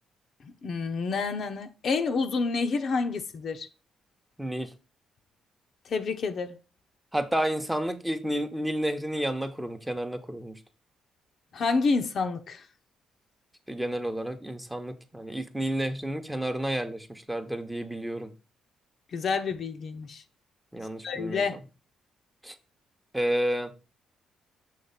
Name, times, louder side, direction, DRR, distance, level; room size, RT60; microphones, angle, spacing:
voice 1, 0.6-3.7 5.9-6.6 11.5-12.6 19.1-20.2 21.0-21.6, left 4 dB, 55° left, 0.7 m, -28 dB
voice 2, 4.4-4.7 7.1-10.6 13.7-18.3 20.7-21.4 22.4-22.5 23.1-23.7, right 1 dB, 5° right, 0.9 m, -30 dB
6.5 x 3.2 x 5.8 m
cardioid pair, 90°, 0 cm